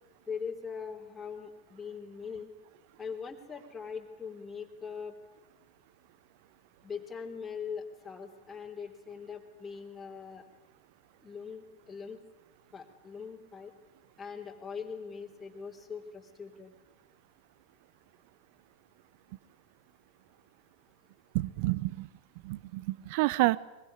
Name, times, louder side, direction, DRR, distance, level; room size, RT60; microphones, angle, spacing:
voice 1, 0.3-2.5 3.0-5.2 6.8-10.4 11.2-12.2 12.7-13.7 14.2-16.7, left 6 dB, 10° left, -1 dB, 3.3 m, -41 dB
voice 2, 21.3-22.1 22.4-23.6, right 20 dB, 50° right, 21 dB, 0.8 m, -29 dB
23.0 x 22.5 x 9.6 m, 1.1 s
figure-of-eight pair, 90°, 0 cm